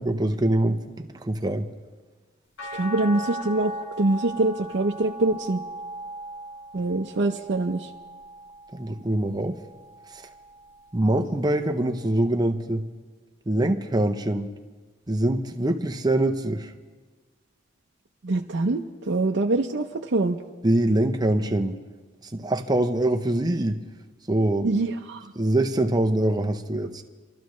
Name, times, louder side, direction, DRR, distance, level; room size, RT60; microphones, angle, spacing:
voice 1, 0.0-1.7 8.7-9.6 10.1-10.3 10.9-12.8 13.5-14.5 15.1-16.7 20.6-21.8 22.2-23.8 24.3-24.7 25.4-27.0, right 1 dB, 20° right, 5 dB, 0.6 m, -24 dB
sound 1, 2.6-8.9 9.5-10.8 12.2-12.3, right 1 dB, 75° left, 2.1 m, -38 dB
voice 2, 2.7-3.7 4.0-5.6 6.7-7.9 18.2-20.4 24.6-25.2, right 2 dB, 60° right, 1 dB, 0.6 m, -24 dB
29.0 x 13.0 x 3.1 m, 1.3 s
head